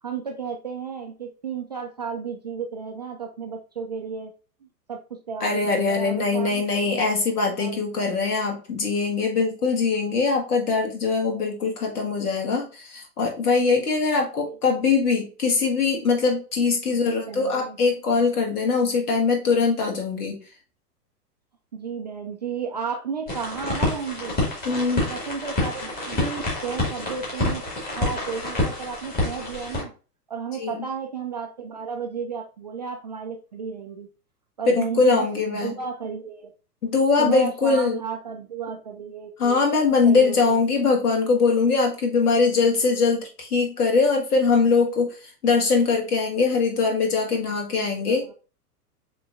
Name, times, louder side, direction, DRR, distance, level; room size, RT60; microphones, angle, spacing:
voice 1, 0.0-4.3 4.9-6.9 7.6-7.8 14.4-14.6 16.9-17.8 21.7-24.4 25.1-27.6 27.9-29.9 30.3-34.1 34.6-36.5 37.2-39.6 40.0-40.6 48.0-48.3, right 6 dB, 30° right, 2 dB, 0.3 m, -33 dB
voice 2, 5.4-20.4 24.6-25.1 30.5-30.8 35.0-35.7 36.8-38.0 39.4-45.1 45.4-48.3, left 4 dB, 65° left, 2 dB, 1.7 m, -22 dB
sound 1, 23.3-29.8, left 2 dB, 20° left, 2.0 m, -28 dB
6.7 x 3.0 x 2.5 m, 0.35 s
figure-of-eight pair, 105°, 48 cm